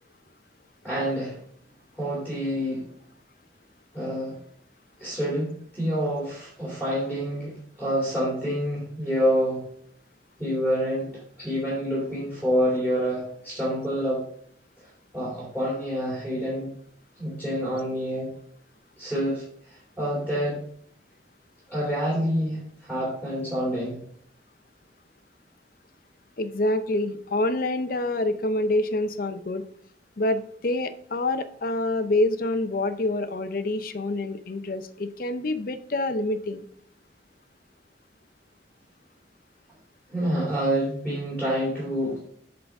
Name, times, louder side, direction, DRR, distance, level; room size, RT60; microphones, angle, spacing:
voice 1, 0.8-1.4 2.0-2.9 3.9-4.4 5.0-9.7 10.4-11.1 11.4-14.2 15.1-16.8 17.2-18.3 19.0-20.6 21.7-24.0 40.1-42.2, equal, 10° right, -6 dB, 2.3 m, -27 dB
voice 2, 26.4-29.7 30.2-36.6, left 2 dB, 50° left, 10 dB, 0.6 m, -26 dB
8.0 x 3.9 x 4.7 m, 0.63 s
head